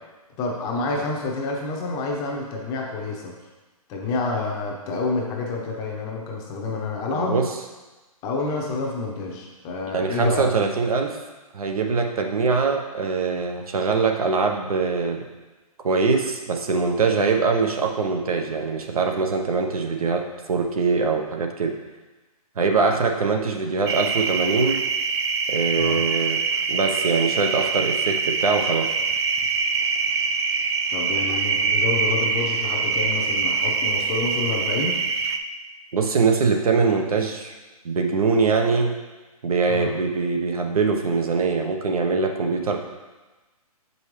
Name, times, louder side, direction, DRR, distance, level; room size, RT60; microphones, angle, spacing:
voice 1, 0.4-3.3 3.9-7.4 8.2-10.5 25.7-26.1 30.9-35.0 39.7-39.9, left 3 dB, 20° left, -1 dB, 0.9 m, -28 dB
voice 2, 7.1-7.5 9.9-11.2 11.5-15.2 15.8-21.7 22.6-24.8 25.5-26.4 26.7-28.9 35.9-37.5 37.8-38.9 39.4-42.8, right 4 dB, 70° right, 3 dB, 1.0 m, -23 dB
sound 1, 23.9-35.4, right 5 dB, 45° right, 0.5 m, -24 dB
6.9 x 5.4 x 3.2 m, 1.2 s
hypercardioid pair, 140°, 19 cm